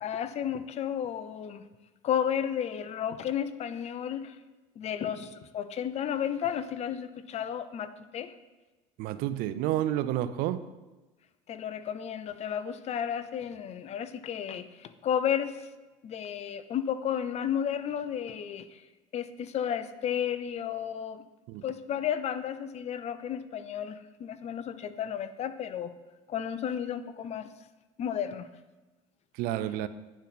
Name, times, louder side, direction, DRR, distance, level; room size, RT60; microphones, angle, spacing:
voice 1, 0.0-1.6 2.0-4.4 4.8-8.3 11.5-15.7 16.0-18.8 19.1-21.2 21.6-25.9 26.3-27.5 28.0-28.5, left 9 dB, 45° left, 12 dB, 0.5 m, -33 dB
voice 2, 9.0-10.7 21.5-21.6 29.3-29.9, right 13 dB, 65° right, 14 dB, 0.4 m, -30 dB
9.8 x 4.1 x 4.1 m, 1.2 s
supercardioid pair, 85°, 16 cm